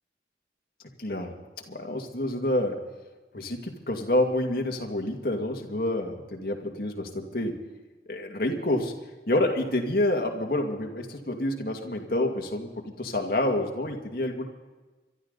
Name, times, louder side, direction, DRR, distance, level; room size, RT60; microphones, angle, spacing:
voice 1, 1.0-1.4 1.7-2.8 3.3-7.6 8.1-8.9 9.3-14.5, left 1 dB, 55° left, 2 dB, 2.3 m, -28 dB
24.5 x 12.5 x 4.1 m, 1.2 s
head